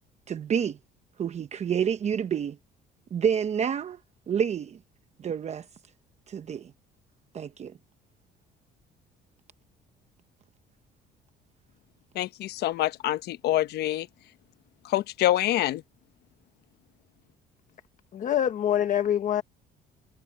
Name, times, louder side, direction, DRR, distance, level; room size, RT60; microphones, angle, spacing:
voice 1, 0.3-0.8 1.2-2.6 3.1-4.0 4.3-4.8 5.2-5.7 6.3-6.7 7.3-7.7, right 7 dB, 40° right, 0.9 m, -28 dB
voice 2, 12.1-14.1 14.8-15.8, left 14 dB, 75° left, 1.0 m, -26 dB
voice 3, 18.1-19.4, left 10 dB, 50° left, 1.3 m, -25 dB
cardioid pair, 110°, 17 cm